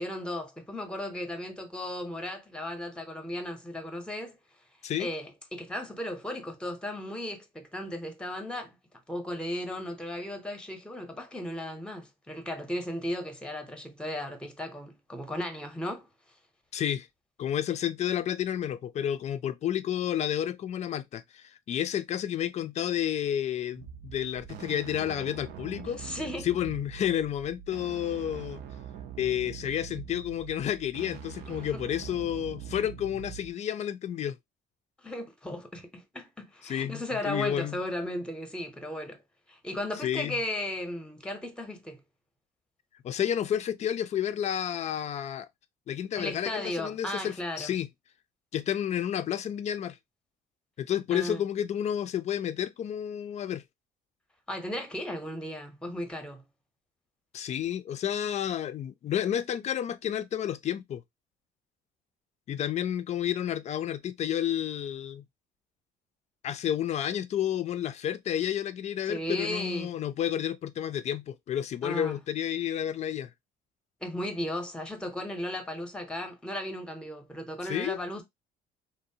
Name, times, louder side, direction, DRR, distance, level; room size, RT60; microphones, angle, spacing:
voice 1, 0.0-4.4 5.0-8.8 9.1-16.1 25.9-26.5 31.5-31.8 35.0-39.2 39.5-42.0 46.2-47.7 51.1-51.4 54.5-56.4 69.1-69.9 71.8-72.2 74.0-78.2, left 1 dB, 5° left, 0.7 m, -36 dB
voice 2, 16.7-17.1 17.4-26.2 26.4-28.6 29.2-34.4 36.6-37.8 40.0-40.4 43.0-45.5 45.9-47.9 48.5-50.0 50.8-53.6 57.3-61.0 62.5-65.2 66.4-73.3 77.7-78.0, left 10 dB, 40° left, 0.4 m, -31 dB
sound 1, 23.7-33.5, right 8 dB, 70° right, 0.5 m, -43 dB
2.7 x 2.1 x 2.6 m
cardioid pair, 110°, 17 cm